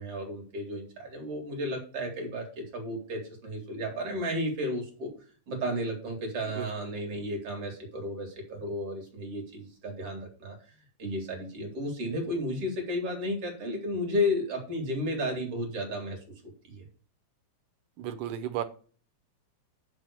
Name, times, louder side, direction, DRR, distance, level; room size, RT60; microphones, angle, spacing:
voice 1, 0.0-5.1 5.5-16.3 16.6-16.8, left 1 dB, 50° right, 1 dB, 3.4 m, -33 dB
voice 2, 18.0-18.6, right 11 dB, 85° right, 10 dB, 2.3 m, -33 dB
6.2 x 6.2 x 6.6 m, 0.41 s
omnidirectional pair, 3.5 m